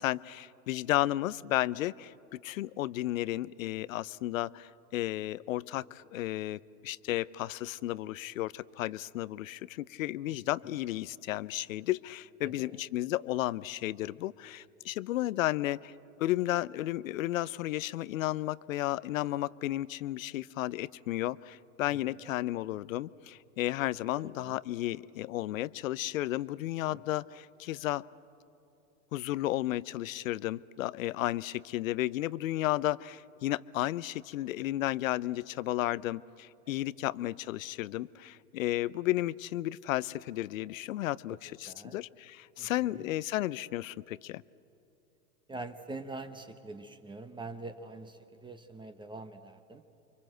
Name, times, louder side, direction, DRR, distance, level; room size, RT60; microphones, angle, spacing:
voice 1, 0.0-15.9 16.2-28.0 29.1-44.4, left 15 dB, 65° left, 20 dB, 0.7 m, -33 dB
voice 2, 12.4-12.8 21.9-22.3 24.1-24.6 26.9-27.0 36.7-36.8 37.0-37.1 41.3-41.4 41.6-42.0 42.6-43.1 45.5-49.8, right 3 dB, 10° right, 8 dB, 1.0 m, -45 dB
29.5 x 24.5 x 7.8 m, 2.7 s
hypercardioid pair, 105°, 44 cm